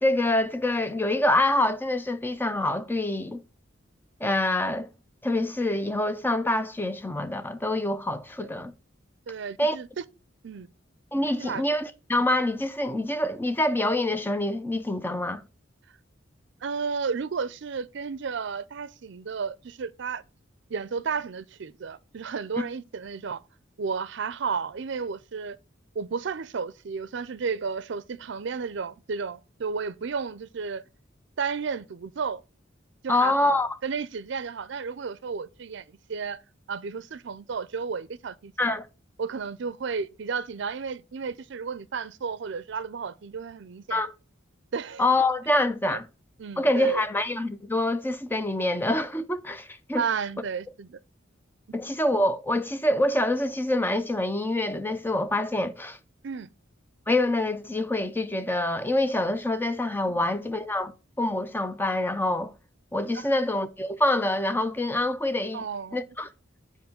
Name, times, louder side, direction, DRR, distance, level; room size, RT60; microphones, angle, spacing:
voice 1, 0.0-3.4 4.2-4.9 5.2-8.7 9.6-9.8 11.1-15.4 33.1-33.8 38.6-38.9 43.9-44.1 45.0-46.1 46.6-50.0 51.7-56.0 57.1-60.9 61.2-62.5 62.9-65.6 65.9-66.3, left 1 dB, 10° left, 0.6 m, -26 dB
voice 2, 9.3-10.0 10.4-10.7 11.4-11.6 16.6-20.2 20.7-23.4 23.8-25.6 25.9-30.8 31.4-32.4 33.0-35.8 36.1-36.4 36.7-38.5 39.2-44.0 44.7-45.0 45.9-46.0 46.4-47.1 50.0-51.0 56.2-56.5 60.1-60.3 63.1-63.4 65.5-66.0, right 5 dB, 65° right, 0.5 m, -32 dB
7.0 x 4.7 x 5.1 m
head